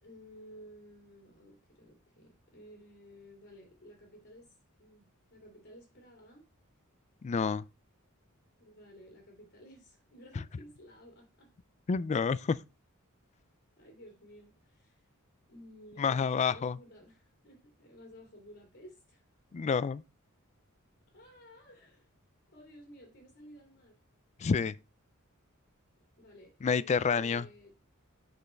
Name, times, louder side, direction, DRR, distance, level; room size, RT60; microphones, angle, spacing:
voice 1, 0.0-4.5 4.8-6.4 8.6-11.5 13.7-15.1 15.5-19.2 21.1-22.1 22.5-24.0 26.2-27.8, equal, 60° left, 2.8 m, -54 dB
voice 2, 7.2-7.6 11.9-12.6 16.0-16.8 19.5-20.0 24.4-24.7 26.6-27.5, left 5 dB, 30° left, 0.3 m, -28 dB
6.3 x 5.4 x 4.4 m
head